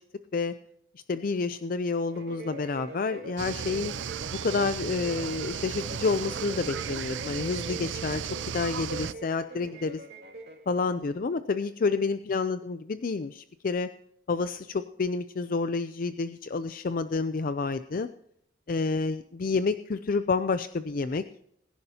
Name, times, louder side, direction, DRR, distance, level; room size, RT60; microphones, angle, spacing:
voice 1, 1.1-3.9 4.4-8.2 8.5-10.0 10.7-13.9 14.3-18.1 18.7-21.2, left 4 dB, 50° left, 11 dB, 0.4 m, -29 dB
sound 1, 2.1-10.7, right 2 dB, 60° right, 2.3 m, -43 dB
sound 2, 3.4-9.1, right 8 dB, 75° right, 0.4 m, -35 dB
22.5 x 11.0 x 2.8 m, 0.74 s
head